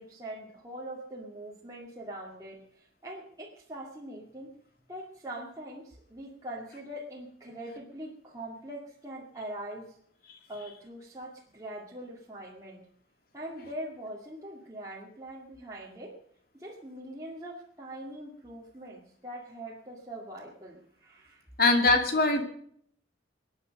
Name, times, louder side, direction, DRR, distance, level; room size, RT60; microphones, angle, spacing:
voice 1, 0.0-4.5 4.9-10.0 10.5-12.8 13.3-16.2 16.5-21.4, right 1 dB, 20° right, -4 dB, 2.2 m, -42 dB
voice 2, 21.6-22.4, left 3 dB, 50° left, 4 dB, 2.5 m, -22 dB
23.0 x 9.9 x 5.3 m, 0.64 s
head